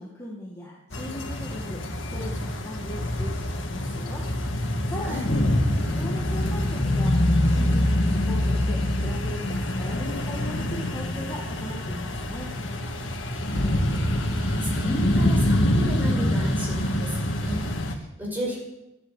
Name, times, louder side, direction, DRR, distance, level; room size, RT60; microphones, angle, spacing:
voice 1, 0.0-1.8 2.1-4.2 4.9-5.4 5.8-7.1 7.5-12.5, left 1 dB, 15° left, -3 dB, 2.0 m, -38 dB
sound 1, 0.9-18.0, left 1 dB, 70° left, 1.9 m, -25 dB
voice 2, 13.5-18.6, equal, 10° right, -3 dB, 5.7 m, -34 dB
12.5 x 11.5 x 8.4 m, 0.93 s
head